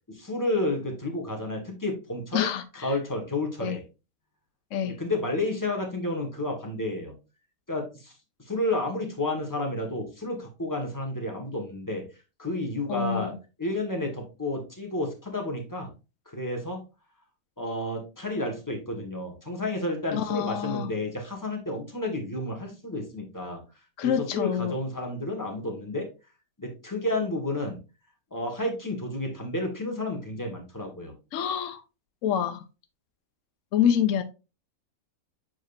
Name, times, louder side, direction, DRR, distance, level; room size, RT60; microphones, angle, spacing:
voice 1, 0.1-2.5 2.8-3.8 4.9-7.1 7.7-8.1 8.5-12.0 12.4-13.3 13.6-15.9 16.3-16.8 17.6-23.6 24.0-26.1 26.6-27.8 28.3-31.1, left 1 dB, 15° left, 1 dB, 1.6 m, -31 dB
voice 2, 2.3-2.9 3.6-3.8 4.7-4.9 12.9-13.4 20.1-20.9 24.0-24.8 31.3-31.8 32.2-32.6 33.7-34.2, left 9 dB, 65° left, 7 dB, 1.0 m, -26 dB
7.6 x 4.8 x 2.6 m, 0.29 s
omnidirectional pair, 1.5 m